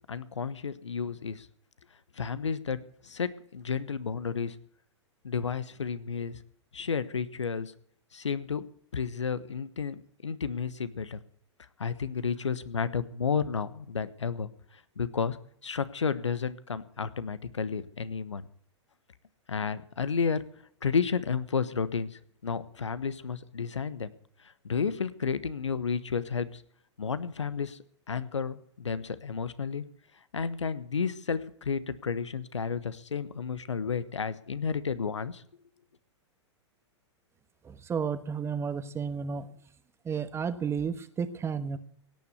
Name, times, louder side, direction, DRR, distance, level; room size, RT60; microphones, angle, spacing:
voice 1, 0.1-1.5 2.2-2.8 3.0-4.6 5.2-6.4 6.7-7.7 8.1-8.6 8.9-11.2 11.8-14.5 15.0-15.4 15.6-18.4 19.5-20.4 20.8-24.1 24.6-26.6 27.0-27.8 28.1-29.8 30.3-35.4, left 6 dB, 80° left, 15 dB, 1.2 m, -32 dB
voice 2, 37.6-39.5 40.0-41.8, right 6 dB, 15° right, 12 dB, 1.3 m, -32 dB
17.5 x 9.8 x 8.2 m, 0.63 s
figure-of-eight pair, 105°, 15 cm